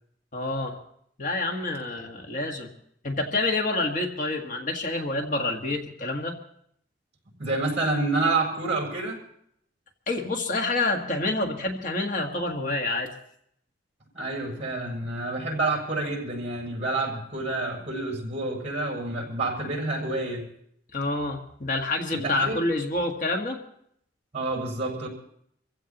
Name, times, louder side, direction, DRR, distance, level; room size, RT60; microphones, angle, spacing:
voice 1, 0.3-0.8 1.2-2.7 3.0-6.4 10.1-13.1 20.9-23.6, left 2 dB, 50° left, 3 dB, 1.5 m, -28 dB
voice 2, 7.3-9.2 14.1-20.5 22.1-22.6 24.3-25.1, right 2 dB, 40° right, -1 dB, 6.1 m, -28 dB
26.5 x 15.5 x 2.9 m, 0.69 s
head